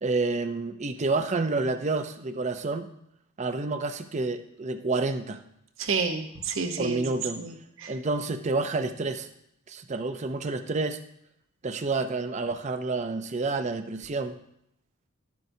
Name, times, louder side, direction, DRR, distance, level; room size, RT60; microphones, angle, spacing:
voice 1, 0.0-2.9 3.4-5.4 6.8-7.4 7.9-9.3 9.7-11.0 11.6-14.4, right 3 dB, 35° right, 9 dB, 0.5 m, -29 dB
voice 2, 5.8-7.0 7.4-7.9, right 4 dB, 65° right, 6 dB, 0.9 m, -30 dB
11.0 x 10.5 x 2.7 m, 0.74 s
head